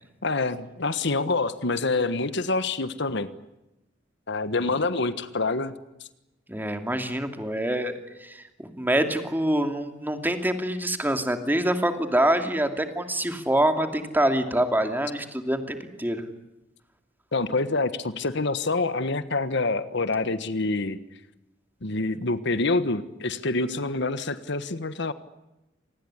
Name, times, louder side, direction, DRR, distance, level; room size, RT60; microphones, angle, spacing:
voice 1, 0.2-3.3 4.3-5.7 17.3-21.0 21.8-25.1, left 3 dB, 65° left, 12 dB, 1.4 m, -26 dB
voice 2, 6.5-7.9 8.2-16.2, right 1 dB, 10° right, 6 dB, 2.7 m, -25 dB
27.0 x 19.5 x 9.9 m, 0.95 s
head